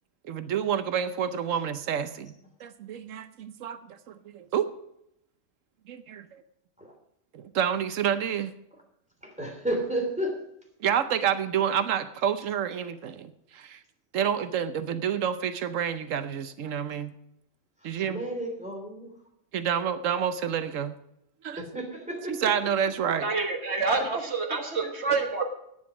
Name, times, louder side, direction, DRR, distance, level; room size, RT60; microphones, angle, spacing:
voice 1, 0.3-2.3 2.6-4.7 5.9-6.4 7.3-8.5 10.8-13.8 14.1-17.2 17.8-18.2 19.5-21.0 21.4-21.6 22.3-23.3, right 8 dB, 85° right, 11 dB, 1.2 m, -29 dB
voice 2, 9.2-10.4 17.8-19.1 21.6-22.4, right 1 dB, 5° right, 2 dB, 3.0 m, -32 dB
voice 3, 23.2-25.4, right 4 dB, 60° right, 4 dB, 1.5 m, -27 dB
11.0 x 9.6 x 6.0 m, 0.77 s
omnidirectional pair, 1.3 m